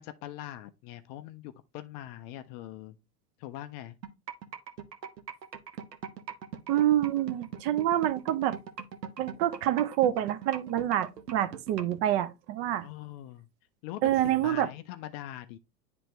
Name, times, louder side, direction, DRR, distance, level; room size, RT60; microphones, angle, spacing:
voice 1, 0.0-3.0 3.4-4.0 12.8-13.5 13.8-15.6, left 13 dB, 30° left, 0.4 m, -42 dB
sound 1, 4.0-12.0, right 8 dB, 80° right, 1.0 m, -40 dB
voice 2, 6.7-8.6 9.2-12.9 14.0-14.7, right 12 dB, 40° right, 0.7 m, -27 dB
10.0 x 3.4 x 3.0 m
figure-of-eight pair, 95°, 49 cm